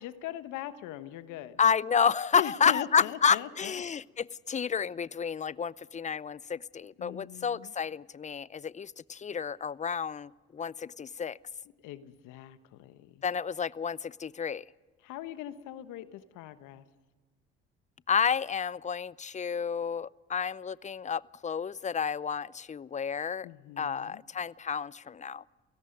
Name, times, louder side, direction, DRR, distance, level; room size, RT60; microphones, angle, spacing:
voice 1, 0.0-1.6 2.3-3.8 7.0-7.7 11.8-13.2 15.0-16.8 23.4-24.2, left 12 dB, 70° left, 12 dB, 1.2 m, -41 dB
voice 2, 1.6-11.4 13.2-14.7 18.1-23.5 23.8-25.4, left 6 dB, 20° left, 22 dB, 0.6 m, -30 dB
30.0 x 17.5 x 5.3 m, 1.4 s
hypercardioid pair, 55°, 32 cm